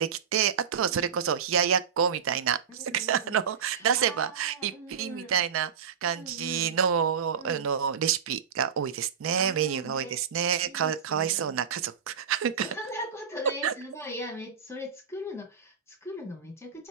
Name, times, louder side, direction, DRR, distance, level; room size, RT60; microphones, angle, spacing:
voice 1, 0.0-12.7 13.6-13.7, right 8 dB, 70° right, 0.3 m, -28 dB
voice 2, 2.7-3.4 3.7-5.4 6.1-6.8 7.3-7.7 9.3-10.2 10.6-11.6 12.6-16.9, left 1 dB, 10° left, 0.6 m, -40 dB
4.5 x 2.1 x 4.1 m
head